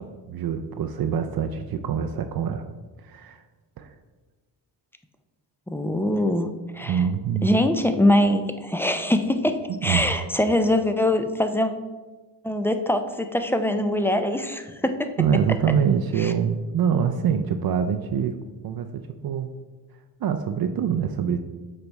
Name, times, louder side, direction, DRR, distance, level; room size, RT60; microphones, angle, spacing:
voice 1, 0.0-2.6 3.0-3.4 3.8-3.9 6.8-7.6 9.7-10.2 15.2-18.3 18.6-19.5 20.2-21.4, right 7 dB, 55° right, 7 dB, 0.5 m, -25 dB
voice 2, 5.7-6.5 6.7-7.0 7.4-11.7 12.4-15.1 16.2-16.3, left 1 dB, 5° left, 8 dB, 0.4 m, -23 dB
7.1 x 3.3 x 5.2 m, 1.3 s
cardioid pair, 90°, 44 cm